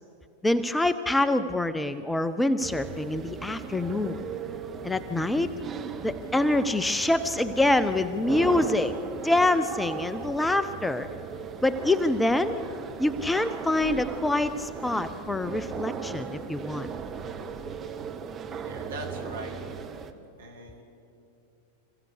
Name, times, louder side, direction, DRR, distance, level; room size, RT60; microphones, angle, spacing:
voice 1, 0.4-4.2 4.8-5.5 6.0-11.1 11.6-12.6 13.0-16.9, left 2 dB, 5° left, 13 dB, 0.6 m, -25 dB
sound 1, 2.6-20.1, right 6 dB, 25° right, 1.2 m, -37 dB
voice 2, 18.6-19.6 20.4-20.8, right 2 dB, 65° right, 2 dB, 2.7 m, -40 dB
26.5 x 15.5 x 6.7 m, 2.7 s
figure-of-eight pair, 90°, 0 cm